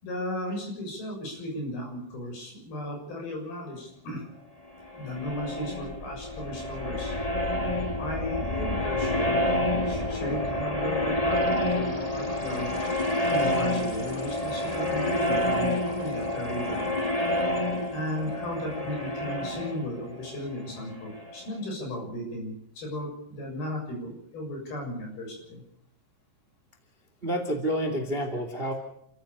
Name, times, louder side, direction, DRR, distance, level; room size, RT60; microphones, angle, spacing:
voice 1, 0.0-4.2 5.0-7.2 7.4-7.7 8.0-9.6 9.9-12.7 13.3-17.0 17.9-25.6, left 1 dB, 60° left, 2 dB, 8.7 m, -35 dB
sound 1, 4.8-21.4, left 1 dB, 25° left, 0.7 m, -28 dB
voice 2, 27.2-28.7, equal, 20° right, 5 dB, 1.9 m, -29 dB
29.5 x 14.5 x 6.8 m, 0.73 s
omnidirectional pair, 5.0 m